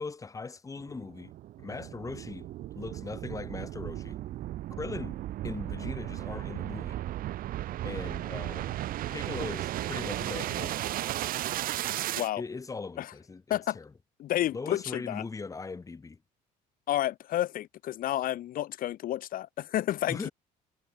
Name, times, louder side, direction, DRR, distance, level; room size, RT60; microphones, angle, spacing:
voice 1, 0.0-1.3 1.6-2.5 2.8-4.2 4.7-5.2 5.4-7.0 7.8-8.8 9.1-10.8 12.4-13.9 14.5-16.2 20.1-20.3, left 4 dB, 20° left, 6.1 m, -39 dB
sound 1, 0.8-12.3, right 14 dB, 60° right, 1.9 m, -35 dB
voice 2, 14.2-15.2 16.9-20.3, left 13 dB, 60° left, 4.9 m, -30 dB
cardioid pair, 130°, 16 cm